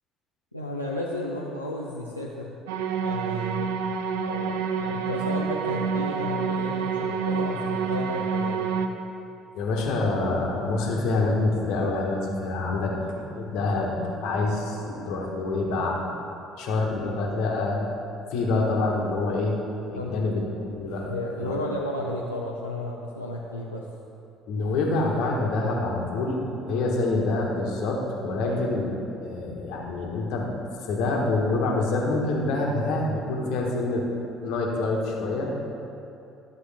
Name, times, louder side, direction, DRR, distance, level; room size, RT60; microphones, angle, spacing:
voice 1, 0.5-2.6 3.0-3.8 4.2-8.8 20.0-20.2 21.1-23.8 28.4-28.6, left 1 dB, 90° left, -4 dB, 0.6 m, -33 dB
sound 1, 2.7-8.9, right 6 dB, 65° right, 0.5 m, -28 dB
voice 2, 9.5-16.0 16.6-17.9 18.3-19.6 19.9-21.1 21.4-21.6 24.5-30.5 30.8-34.0 34.4-35.6, left 2 dB, 60° left, -1 dB, 1.5 m, -26 dB
13.0 x 7.6 x 3.5 m, 2.8 s
figure-of-eight pair, 55°, 0 cm